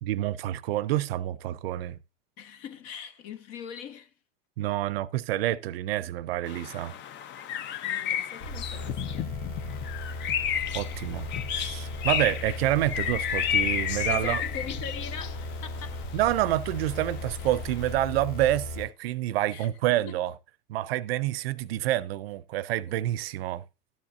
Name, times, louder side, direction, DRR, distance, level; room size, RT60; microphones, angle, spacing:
voice 1, 0.0-2.0 4.6-6.9 10.7-11.3 11.5-14.4 16.1-20.3 20.7-23.6, right 14 dB, 80° right, 0.6 m, -28 dB
voice 2, 2.4-4.1 7.8-9.4 14.0-16.1 19.5-20.2, left 7 dB, 55° left, 1.2 m, -41 dB
sound 1, 6.5-17.9, left 9 dB, 40° left, 0.6 m, -32 dB
sound 2, 8.4-18.8, left 2 dB, 75° left, 3.7 m, -37 dB
12.5 x 7.3 x 2.5 m
hypercardioid pair, 100°, 30 cm